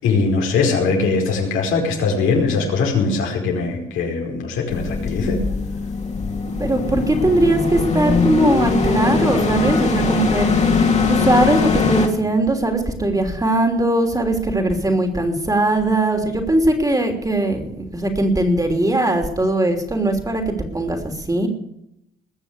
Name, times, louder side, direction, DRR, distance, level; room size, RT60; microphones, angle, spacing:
voice 1, 0.0-5.4, left 4 dB, 90° left, 0 dB, 5.1 m, -21 dB
sound 1, 4.7-12.1, left 4 dB, 35° left, 2.7 m, -20 dB
voice 2, 6.6-10.5 11.1-21.0 21.3-21.5, right 1 dB, 15° right, 4 dB, 3.1 m, -20 dB
20.5 x 6.9 x 8.3 m, 0.79 s
cardioid pair, 90°, 20 cm